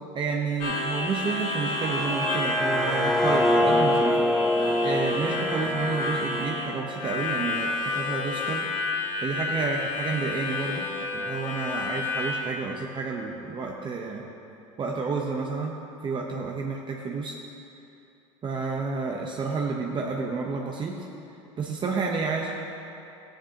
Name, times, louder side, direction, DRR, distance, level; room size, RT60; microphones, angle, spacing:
voice 1, 0.1-8.7 9.2-14.2 14.8-15.8 16.0-17.4 18.4-21.1 21.6-22.5, right 4 dB, 30° right, -1 dB, 1.0 m, -30 dB
Harmonica, 0.6-12.4, left 2 dB, 75° left, 2.7 m, -30 dB
sound 1, 1.7-7.6, left 1 dB, 5° left, 0.4 m, -26 dB
14.5 x 10.0 x 2.9 m, 2.8 s
supercardioid pair, 95°, 16 cm